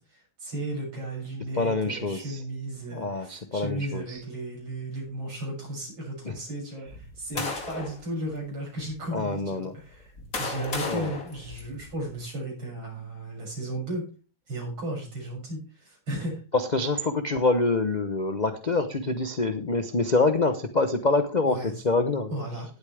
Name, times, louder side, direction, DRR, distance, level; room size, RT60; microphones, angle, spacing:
voice 1, 0.1-10.1 10.4-14.1 14.5-16.4 21.5-21.7 22.3-22.7, right 1 dB, 80° right, -2 dB, 7.7 m, -35 dB
voice 2, 1.5-2.4 2.9-4.2 6.2-6.3 7.3-7.5 9.1-9.7 10.8-11.1 16.5-22.3, left 3 dB, 65° left, 8 dB, 0.4 m, -26 dB
sound 1, 6.9-8.0 8.8-8.9 9.8-12.2, left 3 dB, 45° left, 2.6 m, -35 dB
17.5 x 8.5 x 3.3 m, 0.33 s
omnidirectional pair, 2.2 m